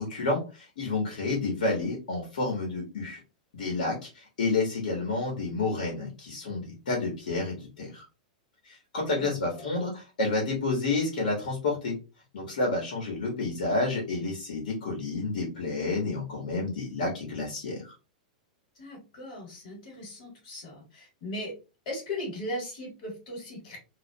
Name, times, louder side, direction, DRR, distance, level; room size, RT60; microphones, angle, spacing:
voice 1, 0.0-3.2 3.5-8.0 8.6-11.9 12.3-17.8, left 3 dB, 80° left, -1 dB, 1.1 m, -30 dB
voice 2, 9.2-9.7 18.7-21.5 21.8-23.8, left 1 dB, 60° left, -2 dB, 1.3 m, -38 dB
2.3 x 2.0 x 2.6 m, 0.30 s
hypercardioid pair, 125°, 4 cm